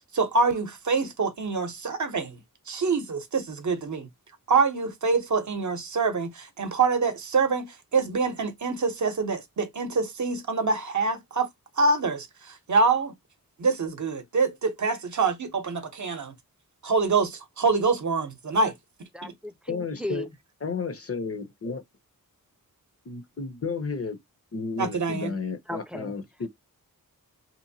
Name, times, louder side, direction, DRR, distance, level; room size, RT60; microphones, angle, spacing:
voice 1, 0.1-2.4 2.7-4.1 4.5-11.5 11.8-13.1 13.6-16.3 16.8-18.7 19.2-19.3 24.8-25.3, right 4 dB, 55° right, 0.7 m, -25 dB
voice 2, 19.1-20.3 25.7-26.1, left 1 dB, 5° right, 0.4 m, -36 dB
voice 3, 19.7-20.3 20.6-21.8 23.1-24.2 24.5-26.5, left 4 dB, 40° left, 0.7 m, -32 dB
2.9 x 2.1 x 2.7 m
cardioid pair, 50°, 35 cm